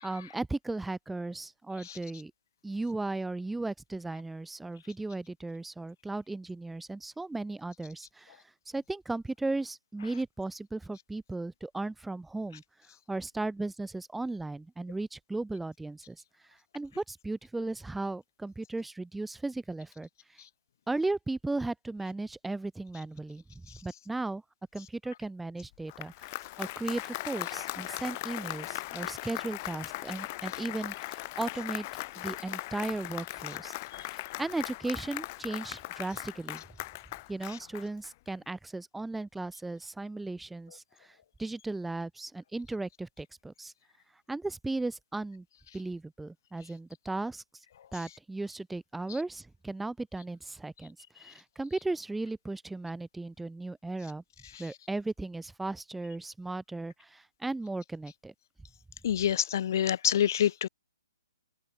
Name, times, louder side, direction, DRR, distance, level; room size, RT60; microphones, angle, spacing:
voice 1, 0.0-2.3 2.6-12.6 13.1-16.2 16.7-20.1 20.9-24.4 24.7-31.9 32.2-36.6 37.3-43.7 44.3-45.5 45.7-47.4 47.9-54.2 54.6-58.3, right 2 dB, 5° right, 5.6 m, -36 dB
Applause, 25.7-38.3, left 21 dB, 35° left, 5.0 m, -39 dB
voice 2, 59.0-60.7, left 10 dB, 55° left, 0.4 m, -26 dB
open air
hypercardioid pair, 135°, 2 cm